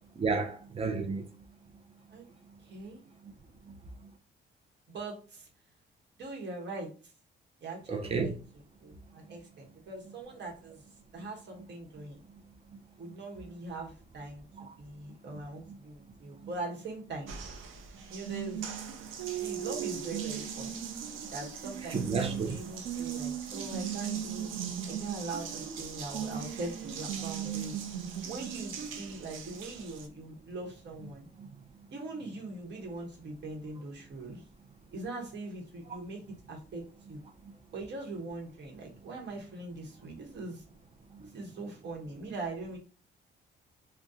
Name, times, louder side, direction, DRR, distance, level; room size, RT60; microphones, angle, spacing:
voice 1, 0.2-1.2 7.9-8.3 14.6-14.7 21.9-22.6 31.4-31.5, right 4 dB, 30° right, 0.6 m, -31 dB
voice 2, 2.6-3.0 4.9-5.5 6.2-6.9 7.6-8.3 8.8-10.8 11.1-12.2 13.0-14.4 14.8-17.3 18.1-18.6 19.4-20.8 21.3-24.5 24.8-27.8 28.3-31.3 31.9-34.4 34.9-36.2 36.5-37.2 37.7-40.6 41.2-42.8, right 2 dB, 60° right, 1.1 m, -41 dB
Water tap faucet, 17.3-30.1, right 9 dB, 85° right, 0.6 m, -38 dB
2.7 x 2.2 x 3.6 m
cardioid pair, 90°, 20 cm